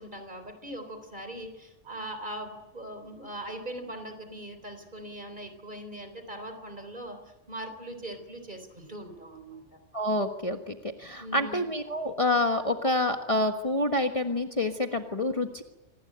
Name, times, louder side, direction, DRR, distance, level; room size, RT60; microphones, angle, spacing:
voice 1, 0.0-9.8 11.2-11.6, right 1 dB, 40° right, 8 dB, 4.2 m, -41 dB
voice 2, 9.9-15.6, left 1 dB, 25° left, 4 dB, 1.5 m, -27 dB
26.0 x 20.0 x 8.9 m, 0.98 s
omnidirectional pair, 1.3 m